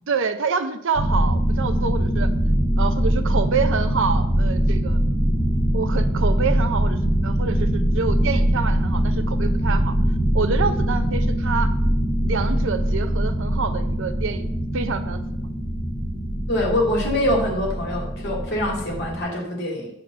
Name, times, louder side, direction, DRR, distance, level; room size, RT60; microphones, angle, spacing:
voice 1, 0.1-2.3 2.8-5.0 5.7-9.9 10.3-11.7 12.2-14.5 14.7-15.2, right 5 dB, 60° right, 10 dB, 0.6 m, -27 dB
sound 1, 1.0-19.2, equal, 15° left, 1.7 m, -22 dB
voice 2, 16.5-19.9, left 1 dB, 50° left, -2 dB, 2.5 m, -24 dB
7.8 x 4.4 x 6.5 m, 0.78 s
head